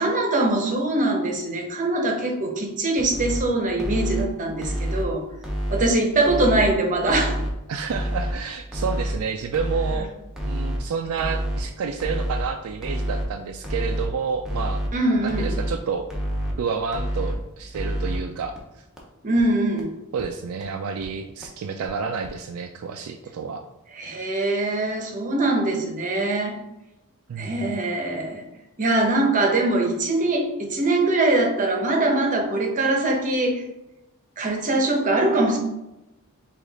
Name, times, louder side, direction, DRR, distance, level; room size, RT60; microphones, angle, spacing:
voice 1, 0.0-5.2 5.7-7.4 14.9-15.5 19.2-19.9 24.0-26.6 27.4-28.4 28.8-33.6 34.4-35.6, right 2 dB, 35° right, 2 dB, 0.8 m, -22 dB
sound 1, 3.0-3.4 3.8-4.2 4.6-5.0 5.4-5.9 6.3-6.7 7.1-7.5 7.9-8.3 8.7-9.2 9.5-10.0 10.4-10.8 11.2-11.6 12.0-12.4 12.8-13.3 13.6-14.1 14.4-14.9 15.3-15.7 16.1-16.5 16.9-17.4 17.7-18.2 18.6-18.7 19.0-19.1 19.4-19.5 19.8-19.9 20.2-20.3 20.6-20.7 21.0-21.1 21.4-21.5 21.8-21.9 22.2-22.3, equal, 5° right, 0.7 m, -27 dB
voice 2, 7.7-10.1 10.4-14.8 15.2-16.1 16.6-18.6 20.1-23.6 27.3-27.7, right 5 dB, 70° right, 5 dB, 0.3 m, -29 dB
4.9 x 2.5 x 3.9 m, 0.92 s
head